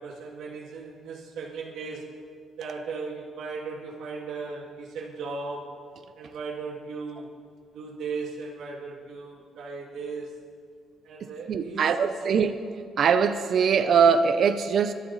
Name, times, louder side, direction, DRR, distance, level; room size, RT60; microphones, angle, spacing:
voice 1, 0.0-2.1 2.6-5.7 6.2-7.3 7.7-10.3 11.0-12.2, right 4 dB, 75° right, 2.6 m, -37 dB
voice 2, 11.5-12.6 13.0-14.9, right 6 dB, 60° right, 0.9 m, -22 dB
25.5 x 13.0 x 4.3 m
cardioid pair, 90°, 0 cm